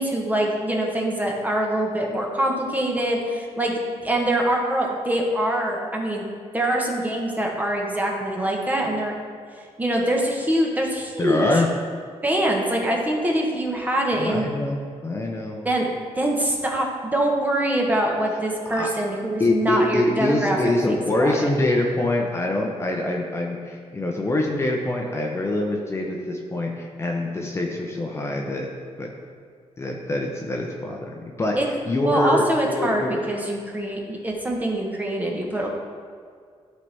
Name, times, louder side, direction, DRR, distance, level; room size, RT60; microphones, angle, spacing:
voice 1, 0.0-3.7 4.0-6.2 6.5-9.2 9.8-11.5 12.2-14.5 15.6-15.9 16.2-21.4 31.5-31.7 32.0-35.7, right 1 dB, 15° right, 0 dB, 1.1 m, -24 dB
voice 2, 11.2-11.7 14.2-15.6 18.8-18.9 19.4-28.7 29.0-29.1 29.8-31.6 31.9-33.3, left 1 dB, 25° left, 0 dB, 0.7 m, -24 dB
11.5 x 4.1 x 3.4 m, 2.1 s
cardioid pair, 120°, 11 cm